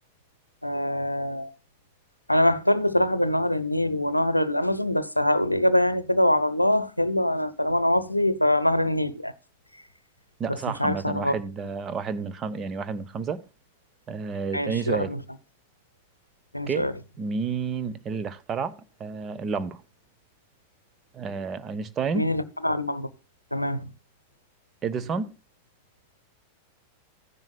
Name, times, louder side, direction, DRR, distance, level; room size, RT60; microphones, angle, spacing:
voice 1, 0.6-1.5 2.3-9.3 10.5-11.4 14.5-15.2 16.5-16.9 22.1-23.1 23.5-23.9, left 1 dB, 90° left, 0.7 m, -24 dB
voice 2, 10.4-13.4 14.1-15.1 16.7-16.9 17.2-19.8 21.1-22.3 24.8-25.3, right 5 dB, 25° right, 0.8 m, -30 dB
15.0 x 10.5 x 2.3 m
figure-of-eight pair, 90°, 0 cm